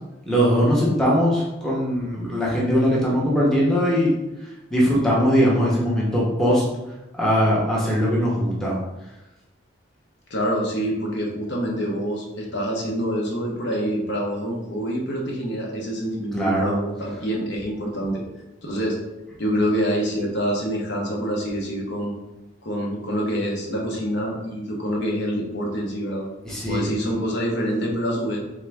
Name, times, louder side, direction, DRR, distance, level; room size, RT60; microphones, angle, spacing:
voice 1, 0.3-4.1 4.7-6.6 7.2-8.8 16.3-16.8 26.4-26.9, equal, 5° left, -6 dB, 0.8 m, -20 dB
voice 2, 10.3-18.2 18.6-19.0 19.4-22.1 22.6-26.3 26.7-28.4, equal, 55° left, -2 dB, 0.9 m, -26 dB
3.7 x 3.6 x 3.4 m, 1.0 s
head